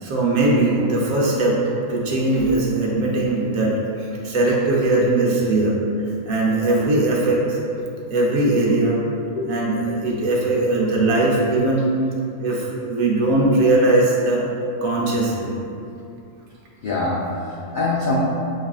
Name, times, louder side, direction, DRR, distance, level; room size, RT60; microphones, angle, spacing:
voice 1, 0.0-1.6 1.9-5.7 6.3-7.6 8.1-9.0 9.5-11.9 12.4-14.4 14.8-15.5, right 2 dB, 75° right, -4 dB, 1.1 m, -20 dB
voice 2, 9.9-10.2 10.9-11.1 16.8-18.2, left 3 dB, 85° left, -6 dB, 0.4 m, -25 dB
6.3 x 2.4 x 2.3 m, 2.6 s
omnidirectional pair, 1.4 m